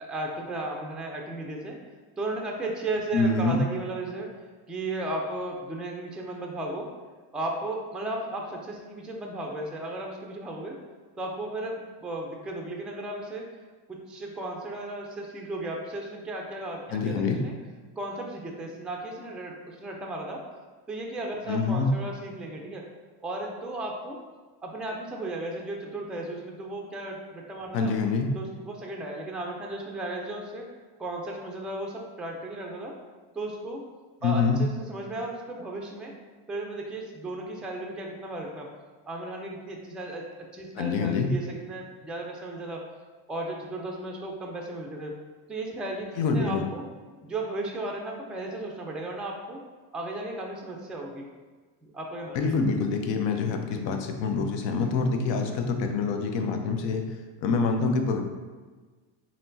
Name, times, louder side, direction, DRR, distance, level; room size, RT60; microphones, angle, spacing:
voice 1, 0.0-1.8 2.2-4.3 4.7-6.9 7.3-10.8 11.2-13.5 13.9-17.5 18.0-20.4 20.9-22.8 23.2-24.2 24.6-27.9 28.3-30.7 31.0-33.0 33.3-33.8 34.2-36.1 36.5-38.7 39.1-42.8 43.3-45.2 45.5-46.1 46.3-46.8 47.2-49.6 49.9-51.2 51.8-52.4, right 2 dB, ahead, 0 dB, 0.4 m, -35 dB
voice 2, 3.1-3.6 16.9-17.4 21.5-21.9 27.7-28.3 34.2-34.6 40.7-41.3 46.2-46.7 52.3-57.0 57.4-58.2, left 4 dB, 65° left, 4 dB, 0.7 m, -26 dB
4.3 x 3.0 x 2.7 m, 1.4 s
supercardioid pair, 90°, 48 cm